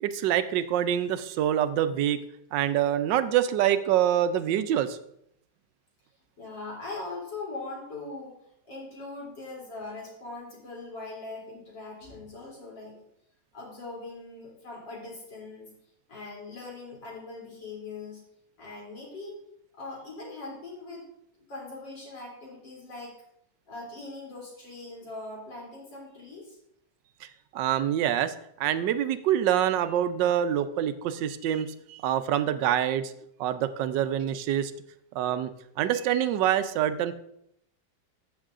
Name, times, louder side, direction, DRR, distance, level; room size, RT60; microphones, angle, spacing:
voice 1, 0.0-2.2 2.5-5.0 27.2-27.3 27.5-28.3 28.6-33.1 33.4-34.7 35.1-35.5 35.8-37.1, right 10 dB, 85° right, 12 dB, 1.2 m, -25 dB
voice 2, 6.4-8.4 8.7-13.0 13.5-15.7 16.1-18.2 18.6-19.4 19.7-21.0 21.5-23.2 23.7-26.6, left 3 dB, 85° left, -4 dB, 3.7 m, -41 dB
14.0 x 6.4 x 2.5 m, 0.75 s
omnidirectional pair, 1.9 m